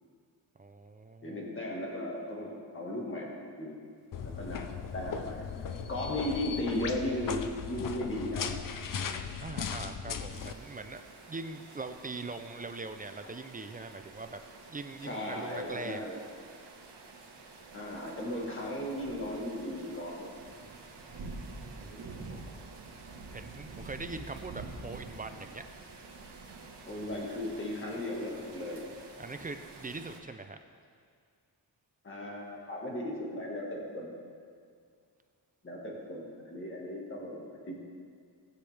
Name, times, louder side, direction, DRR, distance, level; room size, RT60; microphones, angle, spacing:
voice 1, 0.6-1.4 9.4-11.0 11.3-14.4 14.7-16.0 21.1-21.9 23.3-25.6 29.2-30.6, right 3 dB, 20° right, 8 dB, 0.4 m, -42 dB
voice 2, 1.2-3.8 4.2-5.5 5.9-8.5 15.0-16.2 17.7-20.3 21.8-22.5 26.9-28.8 32.0-34.2 35.6-37.8, left 1 dB, 30° left, -3 dB, 1.7 m, -36 dB
sound 1, 4.1-10.5, left 7 dB, 50° left, 0.5 m, -38 dB
Bird vocalization bird call bird song, 4.4-8.6, left 6 dB, 80° left, 0.8 m, -48 dB
sound 2, 10.3-30.2, right 3 dB, 75° right, 1.4 m, -48 dB
18.5 x 7.9 x 3.4 m, 2.2 s
wide cardioid pair, 170°, 42 cm